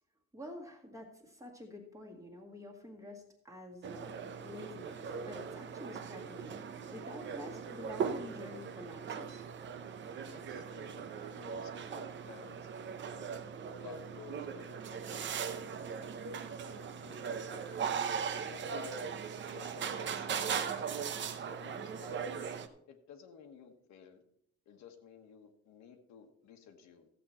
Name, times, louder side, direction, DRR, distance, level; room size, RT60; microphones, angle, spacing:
voice 1, 0.3-4.1 4.4-6.6 6.9-9.5, left 1 dB, 10° right, 0 dB, 1.8 m, -48 dB
sound 1, 3.8-22.7, right 7 dB, 40° right, 0.7 m, -39 dB
voice 2, 10.2-13.4 13.8-15.8 16.6-17.9 18.4-19.1 19.4-21.1 21.6-22.2 22.9-24.2 24.7-27.1, left 6 dB, 70° left, 4 dB, 1.4 m, -54 dB
14.0 x 7.7 x 4.3 m, 0.70 s
cardioid pair, 170°, 29 cm